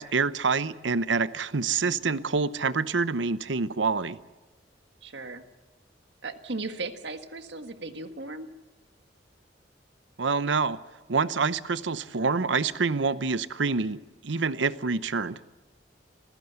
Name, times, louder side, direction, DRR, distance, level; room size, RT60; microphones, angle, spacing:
voice 1, 0.0-4.2 10.2-10.8 11.1-15.4, right 4 dB, 90° right, 0.8 m, -27 dB
voice 2, 1.9-2.2 5.0-5.5 6.2-8.5 12.1-12.4, right 3 dB, 70° right, 1.6 m, -37 dB
26.5 x 15.5 x 8.1 m
head